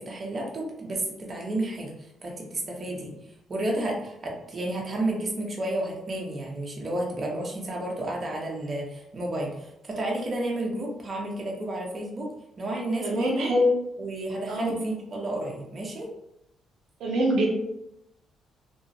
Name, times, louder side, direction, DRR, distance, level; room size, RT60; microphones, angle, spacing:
voice 1, 0.0-1.9 2.2-3.1 3.5-12.3 12.6-13.5 14.0-16.1, right 1 dB, 35° right, -2 dB, 0.8 m, -31 dB
voice 2, 13.0-13.8 14.5-14.8 17.0-17.5, equal, 75° right, -1 dB, 0.5 m, -24 dB
3.0 x 2.3 x 2.7 m, 0.83 s
cardioid pair, 90°, 0 cm